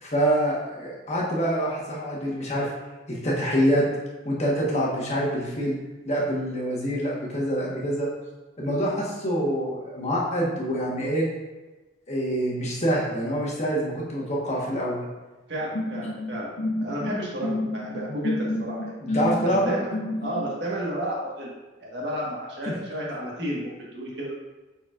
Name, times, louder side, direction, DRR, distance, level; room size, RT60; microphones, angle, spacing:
voice 1, 0.0-2.7 3.1-3.8 4.2-5.7 6.0-8.1 8.6-11.3 12.1-15.1 19.0-19.8 22.7-22.8, equal, 35° left, -4 dB, 1.4 m, -26 dB
voice 2, 15.5-16.5 16.8-18.9 19.4-19.9 20.2-21.5 21.8-24.3, right 1 dB, 60° right, -4 dB, 1.6 m, -32 dB
sound 1, 15.7-20.5, left 1 dB, 55° left, 0.5 m, -30 dB
8.7 x 4.4 x 2.5 m, 1.2 s
head